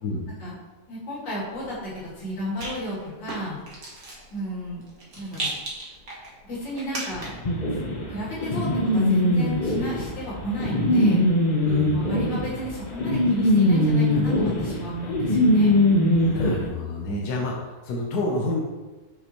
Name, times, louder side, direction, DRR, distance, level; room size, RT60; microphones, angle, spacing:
voice 1, 0.9-3.9 4.3-4.8 5.1-5.5 6.5-7.4 8.1-8.7 8.9-11.2 11.8-15.8 17.1-17.2, equal, 85° left, -7 dB, 2.8 m, -32 dB
Rattle, 1.4-7.5, right 2 dB, 50° right, 1.9 m, -38 dB
sound 1, 7.4-16.5, left 1 dB, 40° left, 0.6 m, -21 dB
voice 2, 11.6-12.0 16.1-18.6, left 2 dB, 65° left, -1 dB, 1.4 m, -29 dB
6.3 x 5.4 x 3.1 m, 1.2 s
omnidirectional pair, 1.9 m